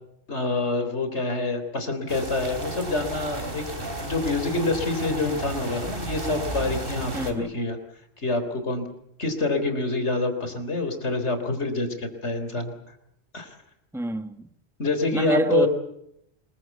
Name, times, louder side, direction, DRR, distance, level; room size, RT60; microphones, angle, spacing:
voice 1, 0.3-3.6 4.0-7.8 8.2-8.9 9.2-12.7 13.3-13.5 14.8-15.7, left 3 dB, 85° left, 3.9 m, -26 dB
sound 1, 2.1-7.3, right 1 dB, 55° right, 3.5 m, -33 dB
voice 2, 7.1-7.5 13.9-14.5 15.1-15.7, right 2 dB, ahead, 1.2 m, -26 dB
26.0 x 22.0 x 8.2 m
omnidirectional pair, 1.1 m